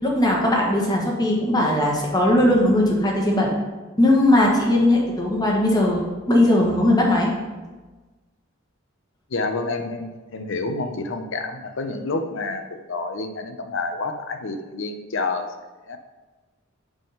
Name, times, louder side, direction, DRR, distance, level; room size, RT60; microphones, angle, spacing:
voice 1, 0.0-3.5 4.0-7.3, left 1 dB, 20° left, -2 dB, 1.4 m, -19 dB
voice 2, 9.3-15.5 15.9-16.0, left 3 dB, 65° left, 7 dB, 0.7 m, -28 dB
8.1 x 3.7 x 5.7 m, 1.2 s
head